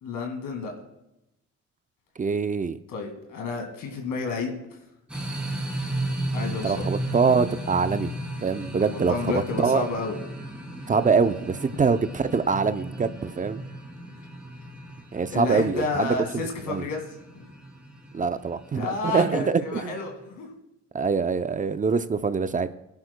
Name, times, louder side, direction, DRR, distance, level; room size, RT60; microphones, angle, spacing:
voice 1, 0.0-0.7 2.9-4.6 6.3-6.9 8.9-10.2 15.3-17.0 17.4-17.5 18.7-20.5, left 3 dB, 80° left, 2 dB, 2.1 m, -30 dB
voice 2, 2.2-2.8 6.6-8.1 8.4-9.8 10.9-13.6 15.1-16.1 16.7-16.8 18.1-19.9 20.9-22.7, right 5 dB, 25° right, 11 dB, 0.5 m, -24 dB
sound 1, 5.1-20.2, right 1 dB, 5° right, 2.8 m, -35 dB
20.0 x 10.5 x 2.2 m, 0.92 s
cardioid pair, 90°, 30 cm